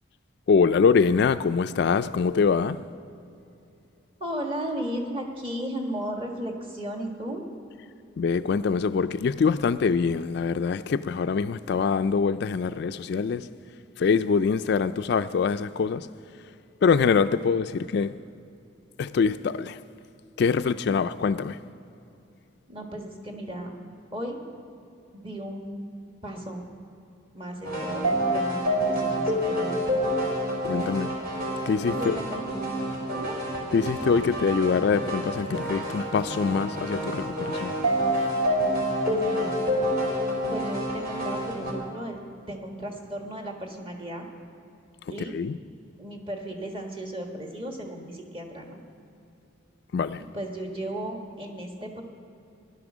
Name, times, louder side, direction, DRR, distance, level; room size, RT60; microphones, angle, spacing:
voice 1, 0.5-2.8 8.2-13.5 14.0-16.1 16.8-18.1 19.0-19.8 20.4-21.6 30.6-31.1 31.7-32.2 33.7-37.7 45.3-45.6 49.9-50.2, left 5 dB, 55° left, 0.3 m, -24 dB
voice 2, 4.2-7.4 22.7-23.7 24.1-24.4 25.1-25.9 26.2-26.6 27.3-30.0 31.9-32.4 33.1-33.5 39.1-39.6 40.5-42.2 42.5-44.3 45.1-45.4 46.0-48.8 50.3-52.0, right 1 dB, 25° right, 1.5 m, -35 dB
sound 1, 27.6-41.7, equal, 45° right, 2.9 m, -28 dB
15.5 x 11.0 x 6.2 m
head